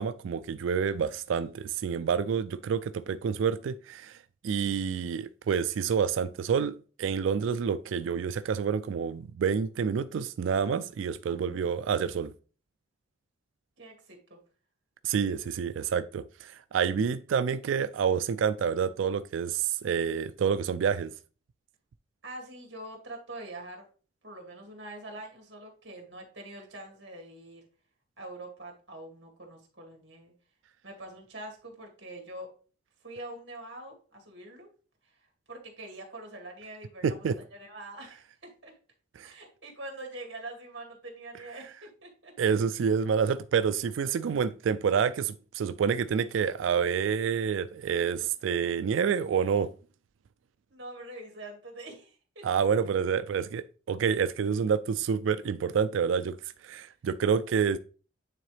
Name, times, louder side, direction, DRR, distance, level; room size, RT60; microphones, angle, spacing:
voice 1, 0.0-4.2 4.4-12.3 15.0-21.1 37.0-37.4 39.2-39.3 42.4-49.7 52.4-56.4 56.6-57.8, right 7 dB, 75° right, 0.3 m, -28 dB
voice 2, 11.3-11.7 13.8-14.4 22.2-23.9 24.2-27.7 28.2-30.3 30.8-32.5 33.0-34.7 35.0-35.1 35.5-37.2 37.5-38.7 39.2-42.3 50.7-52.7, right 1 dB, 60° right, 2.1 m, -44 dB
9.0 x 3.8 x 3.3 m
head